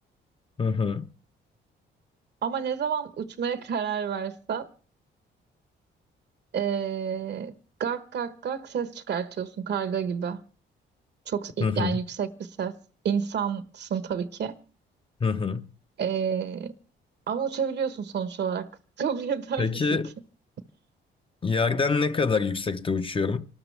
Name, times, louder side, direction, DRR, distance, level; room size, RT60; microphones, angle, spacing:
voice 1, 0.6-1.1 11.6-12.0 15.2-15.7 19.6-20.1 21.4-23.5, left 4 dB, 25° left, 0.7 m, -25 dB
voice 2, 2.4-4.7 6.5-7.5 7.8-10.4 11.3-12.7 13.0-14.5 16.0-16.7 17.3-18.7 19.0-20.0, right 7 dB, 60° right, 1.2 m, -29 dB
28.0 x 13.0 x 3.4 m
cardioid pair, 90°, 20 cm